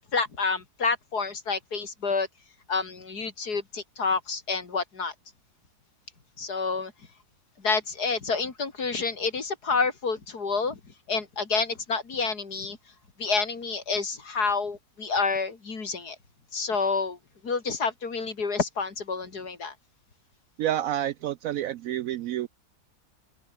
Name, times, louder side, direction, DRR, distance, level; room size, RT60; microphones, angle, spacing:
voice 1, 0.1-2.3 2.7-5.1 6.4-6.9 7.6-10.8 11.1-12.8 13.2-16.2 16.5-17.2 17.4-19.7, left 4 dB, 85° left, 3.4 m, -28 dB
voice 2, 20.6-22.5, right 12 dB, 70° right, 0.9 m, -29 dB
open air
omnidirectional pair, 1.6 m